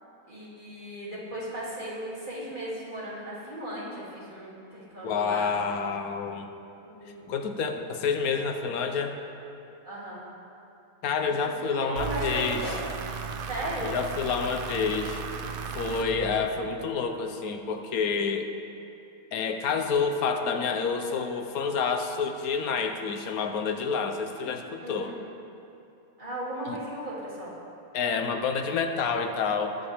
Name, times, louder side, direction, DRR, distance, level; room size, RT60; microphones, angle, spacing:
voice 1, 0.3-5.5 6.8-7.5 8.3-8.4 9.8-10.2 11.6-12.8 13.5-13.9 15.8-16.4 24.8-25.2 26.2-27.5, right 1 dB, 35° right, -8 dB, 2.8 m, -37 dB
voice 2, 5.0-6.5 7.3-9.2 11.0-12.7 13.8-15.2 15.7-18.5 19.3-25.2 26.7-26.8 27.9-29.8, left 5 dB, 80° left, 6 dB, 1.2 m, -28 dB
sound 1, 12.0-16.9, right 6 dB, 55° right, 0.6 m, -36 dB
20.5 x 7.8 x 3.5 m, 2.8 s
omnidirectional pair, 1.5 m